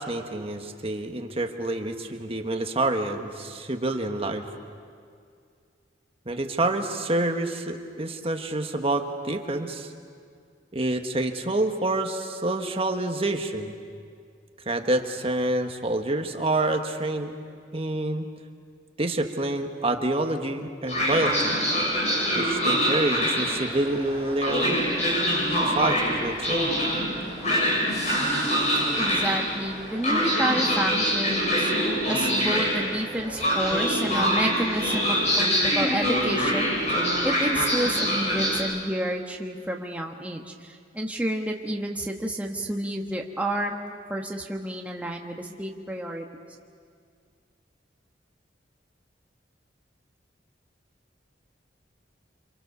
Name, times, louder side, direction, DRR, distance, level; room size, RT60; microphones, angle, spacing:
voice 1, 0.0-4.5 6.2-9.9 10.7-13.7 14.6-17.3 17.7-18.3 19.0-21.5 22.3-24.8 25.6-26.6, right 2 dB, 35° right, 5 dB, 1.5 m, -27 dB
Train, 20.9-38.6, equal, 40° left, 7.8 m, -25 dB
voice 2, 29.0-31.7 32.1-46.2, right 1 dB, 10° right, 0 dB, 1.2 m, -30 dB
28.0 x 25.5 x 6.9 m, 2.2 s
head